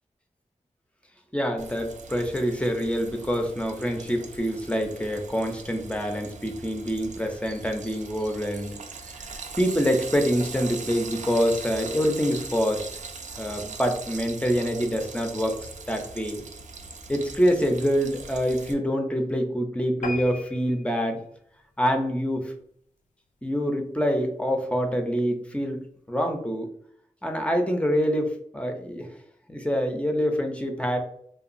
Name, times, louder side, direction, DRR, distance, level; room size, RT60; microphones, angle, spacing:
voice 1, 1.3-8.8 9.0-9.2 9.6-12.9 13.4-15.6 15.9-16.4 17.1-21.2 21.8-22.5 23.4-25.8 26.1-26.7 27.2-29.1 29.5-31.0, equal, 10° left, 3 dB, 0.5 m, -26 dB
Frying (food), 1.6-18.7, right 4 dB, 70° right, 0.4 m, -41 dB
sound 1, 20.0-22.8 23.2-23.4 23.9-24.0 24.3-24.4 24.6-24.7, left 3 dB, 75° left, 0.4 m, -39 dB
2.9 x 2.3 x 2.5 m, 0.67 s
wide cardioid pair, 70°, 13 cm